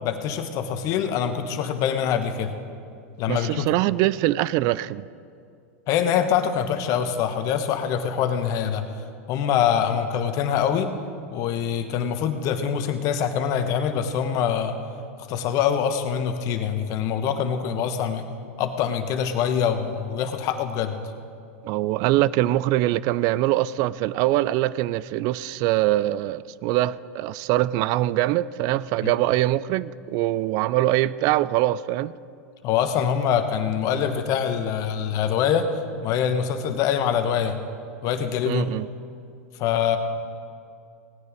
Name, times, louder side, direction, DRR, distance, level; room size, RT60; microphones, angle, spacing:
voice 1, 0.0-2.5 3.2-3.6 5.9-8.8 9.3-10.9 11.3-14.8 15.2-18.2 18.6-21.0 29.0-29.1 32.6-35.7 36.0-37.6 38.0-38.7 39.6-40.0, left 8 dB, 50° left, 1.2 m, -24 dB
voice 2, 3.3-5.0 21.6-32.1 38.5-38.9, right 15 dB, 50° right, 0.3 m, -23 dB
17.5 x 9.5 x 5.1 m
hypercardioid pair, 105°, 8 cm